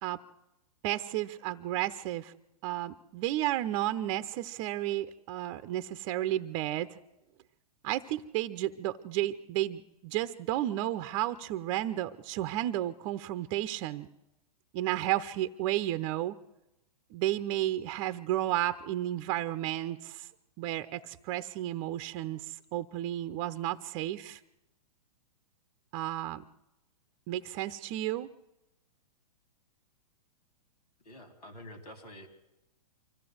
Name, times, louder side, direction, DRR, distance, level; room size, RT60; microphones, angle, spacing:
voice 1, 0.8-2.3 2.6-7.0 7.8-14.1 14.7-16.4 17.1-20.3 20.6-24.4 25.9-26.4 27.3-28.3, right 14 dB, 40° right, 12 dB, 0.8 m, -32 dB
voice 2, 31.0-32.3, equal, 85° left, 8 dB, 3.9 m, -48 dB
24.5 x 14.5 x 7.8 m, 0.91 s
hypercardioid pair, 125°, 20 cm